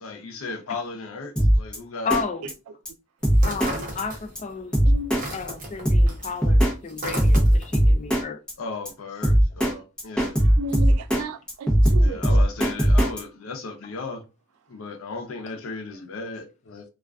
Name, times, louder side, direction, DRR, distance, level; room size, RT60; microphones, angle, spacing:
voice 1, 0.0-2.1 8.6-10.4 12.0-14.2 14.7-16.8, left 4 dB, 75° left, 0.6 m, -36 dB
Drum kit, 1.4-1.8 2.1-2.2 2.5-2.6 2.9-3.0 3.2-3.7 4.0-4.1 4.4-4.5 4.7-5.2 5.5-5.6 5.9-6.7 7.0-8.2 8.5-8.6 8.9-9.0 9.2-9.7 10.0-11.2 11.5-13.2, equal, 5° left, 0.7 m, -18 dB
voice 2, 2.0-2.5 3.4-4.8 5.3-8.4, left 5 dB, 35° left, 0.4 m, -32 dB
sound 1, 3.3-4.6 4.9-7.8, right 1 dB, 40° right, 0.7 m, -35 dB
voice 3, 4.9-5.2 10.4-12.2, right 2 dB, 85° right, 0.3 m, -34 dB
2.3 x 2.3 x 2.3 m
head